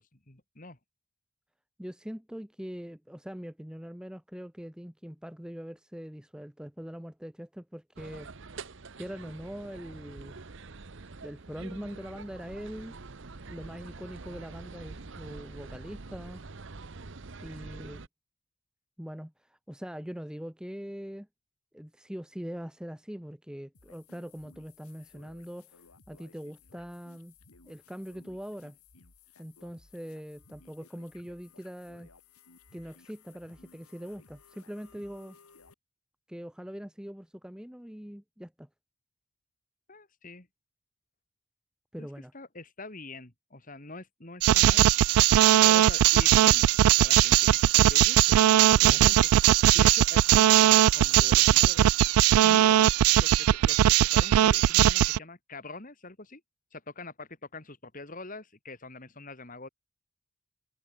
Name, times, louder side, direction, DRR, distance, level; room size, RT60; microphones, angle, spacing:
voice 1, 0.1-0.8 39.9-40.5 42.0-42.1 42.3-45.3 45.6-46.6 47.0-49.2 49.7-52.0 52.4-56.4 56.7-59.7, left 3 dB, 35° left, 2.6 m, -44 dB
voice 2, 1.8-8.3 9.0-10.4 11.2-13.0 13.5-16.4 17.4-18.0 19.0-21.3 21.7-25.8 26.1-27.3 27.6-28.8 29.4-32.1 32.7-35.4 36.3-38.7 41.9-42.3 48.8-49.1, equal, 5° right, 0.6 m, -42 dB
sound 1, 8.0-18.1, right 3 dB, 55° right, 0.9 m, -45 dB
sound 2, 23.7-35.7, left 4 dB, 85° left, 2.6 m, -58 dB
sound 3, 44.4-55.2, right 12 dB, 80° right, 0.3 m, -20 dB
head